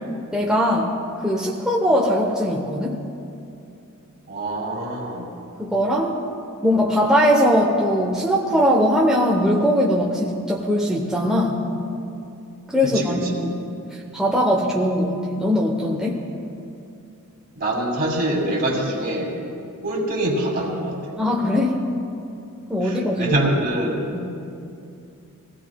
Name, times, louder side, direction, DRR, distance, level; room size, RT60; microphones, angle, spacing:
voice 1, 0.3-0.9 1.2-3.0 5.6-6.2 6.6-11.6 12.7-13.6 14.1-16.2 21.2-21.8 22.7-23.3 24.1-24.3, equal, 5° right, -4 dB, 1.0 m, -20 dB
voice 2, 4.3-5.3 12.8-13.5 17.6-19.4 19.8-21.0 22.8-24.0, right 1 dB, 45° right, -2 dB, 2.6 m, -24 dB
22.5 x 16.5 x 2.3 m, 2.6 s
head